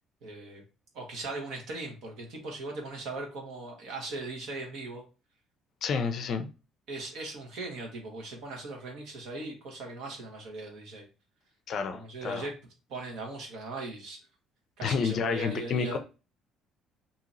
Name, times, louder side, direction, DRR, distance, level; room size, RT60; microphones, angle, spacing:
voice 1, 0.2-0.6 0.9-5.0 6.9-11.1 11.9-12.5 12.9-14.2 14.8-16.0, right 2 dB, 65° right, 1.3 m, -39 dB
voice 2, 5.8-6.5 11.7-12.5 14.8-16.0, left 5 dB, 40° left, 0.4 m, -30 dB
2.9 x 2.8 x 3.8 m
cardioid pair, 170°, 0 cm